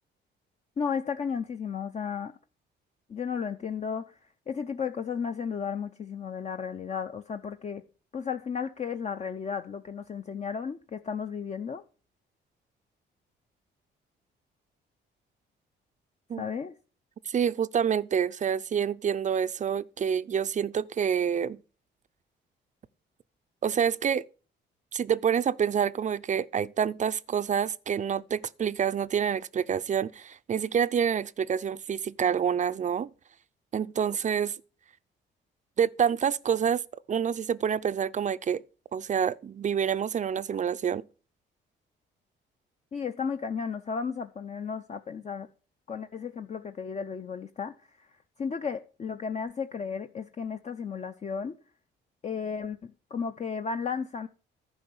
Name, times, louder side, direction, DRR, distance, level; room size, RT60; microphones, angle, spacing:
voice 1, 0.8-2.4 3.1-4.2 4.5-7.8 8.1-11.8 16.4-16.7 42.9-45.5 45.9-51.5 52.2-54.3, left 6 dB, 35° left, 0.6 m, -34 dB
voice 2, 17.3-21.6 23.6-24.2 24.9-33.1 33.7-34.5 35.8-36.8 37.1-38.6 38.9-41.0, right 8 dB, 40° right, 0.5 m, -27 dB
10.5 x 5.3 x 7.0 m
cardioid pair, 90°, 20 cm